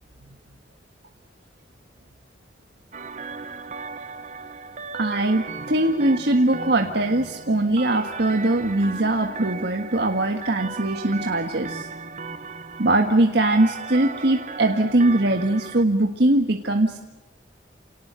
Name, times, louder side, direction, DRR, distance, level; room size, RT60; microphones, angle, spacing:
sound 1, 2.9-15.8, right 4 dB, 45° right, 1.1 m, -36 dB
voice 1, 4.9-11.9 12.8-17.0, right 2 dB, 70° right, 4 dB, 1.6 m, -21 dB
28.0 x 19.0 x 9.5 m, 1.1 s
head